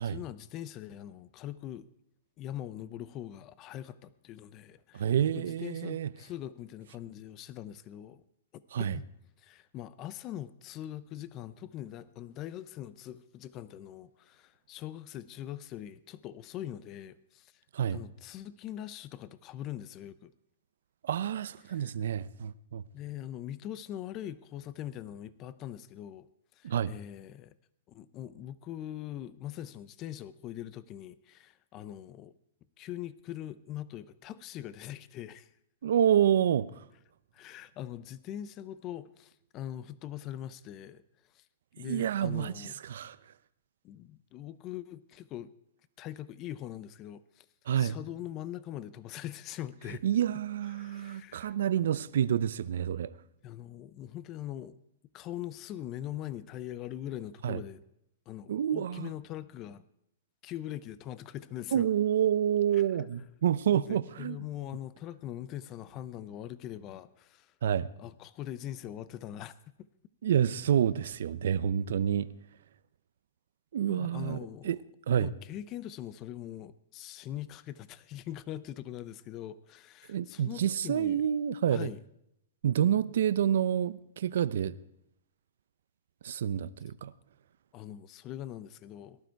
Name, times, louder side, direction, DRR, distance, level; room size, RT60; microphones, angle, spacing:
voice 1, 0.0-1.9 2.4-5.1 5.3-8.2 8.5-9.0 9.4-17.5 17.9-20.3 21.7-21.9 22.9-26.3 26.6-27.5 27.9-32.4 32.8-35.5 37.3-41.0 41.3-41.5 41.8-42.7 43.8-45.5 46.0-47.5 47.8-50.1 50.7-51.5 51.8-51.9 53.4-54.8 55.1-57.8 58.3-59.8 60.4-61.9 62.7-63.1 63.7-67.5 68.0-69.5 73.9-74.8 75.2-81.2 81.7-82.0 87.7-89.2, left 12 dB, 30° left, 0.7 m, -42 dB
voice 2, 4.9-6.1 8.7-9.0 17.7-18.0 21.0-22.8 26.6-26.9 35.8-36.8 41.8-43.2 47.7-48.0 50.0-53.1 57.4-57.6 58.5-59.1 61.7-64.4 67.6-67.9 70.2-72.3 73.7-74.8 75.1-75.3 80.1-81.9 82.6-84.7 86.2-87.1, right 9 dB, 75° right, 0.7 m, -28 dB
19.0 x 12.0 x 4.6 m
hypercardioid pair, 150°, 0 cm